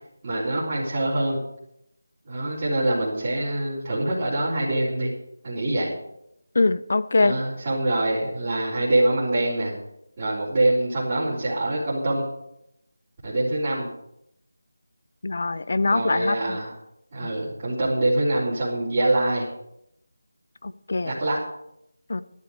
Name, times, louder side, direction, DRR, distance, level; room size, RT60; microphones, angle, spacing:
voice 1, 0.2-1.4 2.3-5.1 5.4-5.9 7.2-9.7 10.2-12.2 13.2-13.9 15.8-16.7 17.1-19.5 21.0-21.4, right 1 dB, 25° right, 3.8 m, -24 dB
voice 2, 6.5-7.4 15.2-16.6 17.2-17.3 20.6-21.1 22.1-22.2, left 3 dB, 50° left, 0.6 m, -23 dB
12.5 x 12.5 x 5.0 m
figure-of-eight pair, 175°, 0 cm